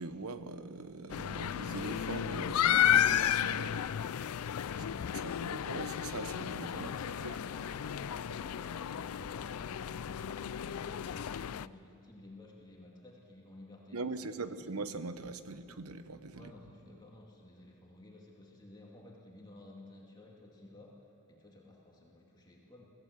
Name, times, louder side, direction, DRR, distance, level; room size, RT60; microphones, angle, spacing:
voice 1, 0.0-3.9 5.2-6.9 7.2-7.4 13.9-16.5, right 3 dB, 85° right, 11 dB, 1.1 m, -42 dB
sound 1, 1.1-11.7, left 9 dB, 85° left, 0.4 m, -33 dB
voice 2, 4.7-5.4 6.7-14.6 16.3-22.8, left 1 dB, 20° left, -2 dB, 2.4 m, -54 dB
23.5 x 15.5 x 8.1 m, 2.9 s
head